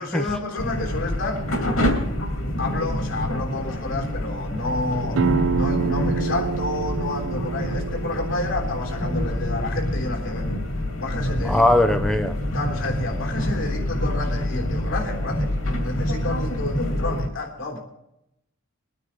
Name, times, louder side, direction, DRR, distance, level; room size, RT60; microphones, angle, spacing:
voice 1, 0.0-1.5 2.6-10.6 11.0-11.6 12.5-17.8, left 2 dB, 65° left, 1 dB, 3.5 m, -30 dB
sound 1, 0.6-17.3, left 1 dB, 85° left, 2.3 m, -26 dB
sound 2, 5.2-10.6, right 6 dB, 75° right, 0.5 m, -29 dB
voice 2, 11.4-12.4, left 1 dB, 5° left, 6 dB, 0.6 m, -19 dB
22.0 x 9.5 x 4.0 m, 0.84 s
head